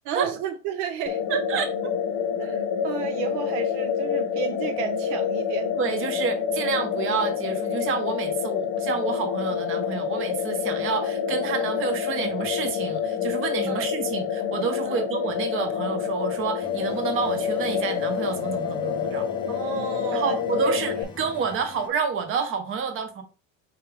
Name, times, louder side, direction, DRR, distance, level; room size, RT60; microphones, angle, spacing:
voice 1, 0.0-5.7 13.7-13.9 14.9-15.1 19.5-20.8, right 9 dB, 70° right, 0.6 m, -33 dB
sound 1, 1.1-21.0, left 7 dB, 50° left, 0.8 m, -27 dB
voice 2, 1.3-1.9 5.8-19.3 20.1-23.2, right 6 dB, 35° right, 0.9 m, -29 dB
sound 2, 16.6-21.9, left 5 dB, 10° left, 0.6 m, -44 dB
4.8 x 2.9 x 3.2 m
supercardioid pair, 130°, 37 cm